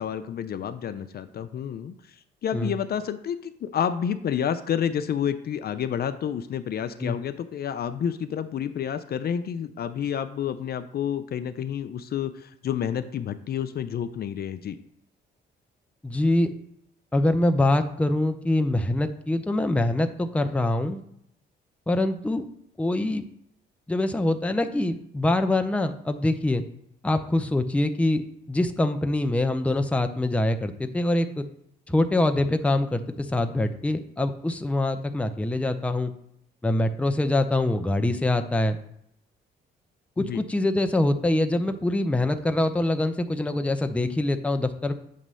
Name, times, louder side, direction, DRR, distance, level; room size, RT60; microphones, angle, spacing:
voice 1, 0.0-14.8 40.2-40.4, left 8 dB, 50° left, 10 dB, 0.5 m, -29 dB
voice 2, 16.0-16.5 17.1-21.0 21.9-22.5 22.8-23.2 23.9-26.6 27.0-28.2 28.5-31.4 31.9-36.1 36.6-38.8 40.2-44.9, left 1 dB, 5° left, 7 dB, 0.5 m, -24 dB
7.5 x 3.0 x 5.5 m, 0.74 s
cardioid pair, 90°, 20 cm